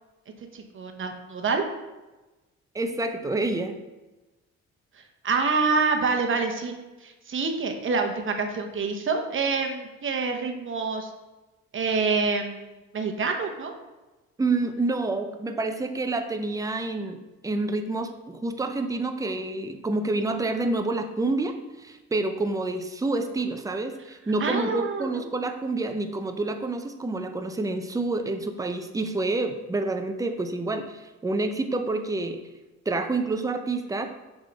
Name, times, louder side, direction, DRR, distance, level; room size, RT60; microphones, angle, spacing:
voice 1, 0.5-1.6 5.2-6.7 7.0-11.1 11.7-13.7 24.4-25.2, right 4 dB, 40° right, 5 dB, 0.9 m, -27 dB
voice 2, 2.7-3.7 14.4-32.4 32.9-34.1, right 2 dB, 10° right, 7 dB, 0.5 m, -28 dB
6.6 x 3.6 x 3.9 m, 1.1 s
cardioid pair, 90°, 30 cm